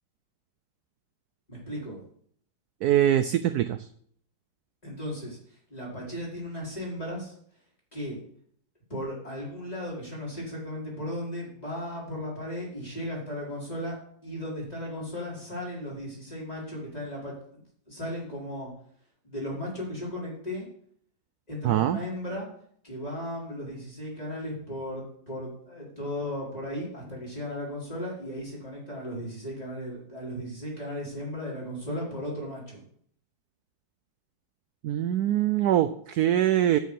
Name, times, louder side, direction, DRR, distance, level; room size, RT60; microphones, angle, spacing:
voice 1, 1.5-2.0 4.8-7.3 7.9-8.2 8.9-14.0 14.2-17.6 17.9-18.7 19.2-20.7 21.5-22.5 22.8-32.8, left 1 dB, 20° left, -5 dB, 4.0 m, -36 dB
voice 2, 2.8-3.9 21.6-22.0 34.8-36.8, right 12 dB, 75° right, 11 dB, 0.9 m, -23 dB
9.3 x 8.6 x 5.3 m, 0.63 s
omnidirectional pair, 2.0 m